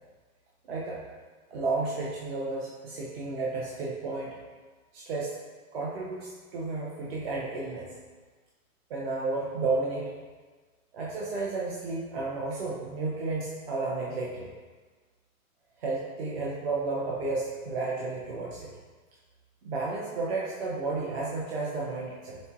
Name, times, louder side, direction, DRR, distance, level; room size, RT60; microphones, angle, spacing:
voice 1, 0.7-1.0 1.5-4.4 4.9-5.4 5.7-7.9 8.9-10.1 10.9-14.5 15.8-18.7 19.6-22.4, right 3 dB, 45° right, -4 dB, 0.5 m, -32 dB
4.2 x 3.7 x 2.4 m, 1.4 s
hypercardioid pair, 165°, 44 cm